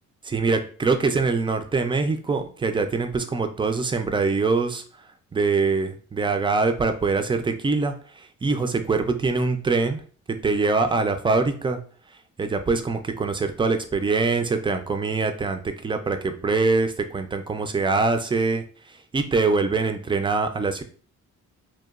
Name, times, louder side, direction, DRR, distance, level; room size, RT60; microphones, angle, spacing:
voice 1, 0.2-4.8 5.3-10.0 10.3-11.8 12.4-20.8, right 4 dB, 15° right, 7 dB, 0.3 m, -24 dB
2.9 x 2.2 x 2.3 m, 0.43 s
cardioid pair, 90°, 30 cm